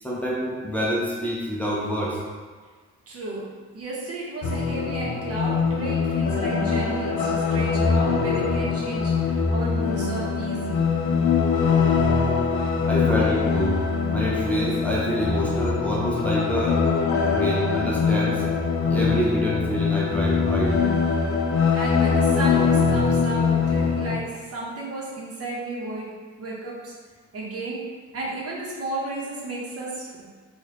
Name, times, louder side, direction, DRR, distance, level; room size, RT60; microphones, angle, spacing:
voice 1, 0.0-2.2 12.9-13.8 14.1-16.8 17.3-18.4 18.9-20.8, equal, 5° left, -5 dB, 0.5 m, -26 dB
voice 2, 3.1-10.9 13.1-13.3 21.7-26.9 27.3-27.9 28.1-30.3, right 2 dB, 50° right, -4 dB, 0.9 m, -33 dB
sound 1, 4.4-24.2, left 5 dB, 70° left, 0.5 m, -23 dB
3.2 x 2.3 x 2.9 m, 1.5 s
cardioid pair, 90°, 30 cm